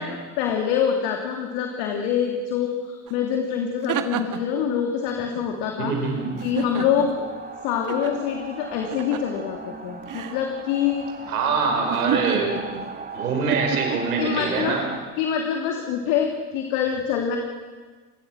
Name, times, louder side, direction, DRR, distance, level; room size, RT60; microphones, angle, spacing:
voice 1, 0.0-6.1 6.4-7.2 7.6-11.0 12.8-12.9 14.2-14.8 15.2-17.4, left 8 dB, 65° left, 2 dB, 2.9 m, -25 dB
sound 1, 3.1-3.2 3.6-4.6 6.4-7.2 7.9-8.1 8.9-9.4 10.1-10.4 11.9-12.9 13.5-14.0, right 9 dB, 45° right, 1.9 m, -29 dB
voice 2, 5.8-6.3 11.3-12.6 13.1-14.8, right 4 dB, 85° right, 2 dB, 5.7 m, -24 dB
sound 2, 5.9-15.0, right 4 dB, 20° right, 2.6 m, -38 dB
27.5 x 21.0 x 6.4 m, 1.4 s
hypercardioid pair, 75°, 43 cm